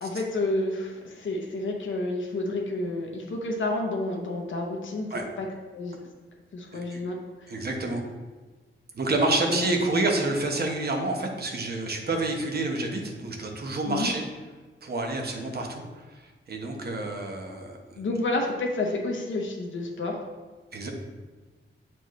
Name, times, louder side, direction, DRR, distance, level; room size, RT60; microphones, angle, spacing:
voice 1, 0.0-5.1 5.4-5.5 5.7-6.0 6.5-7.1 7.4-7.7 9.5-10.0 13.9-14.1 18.0-20.2, left 2 dB, 65° left, 0 dB, 0.8 m, -30 dB
voice 2, 7.5-8.0 8.9-14.2 14.8-15.8 16.1-16.2 16.5-18.0 20.7-20.9, right 2 dB, 50° right, 2 dB, 1.0 m, -28 dB
7.8 x 4.6 x 3.1 m, 1.3 s
wide cardioid pair, 170°, 21 cm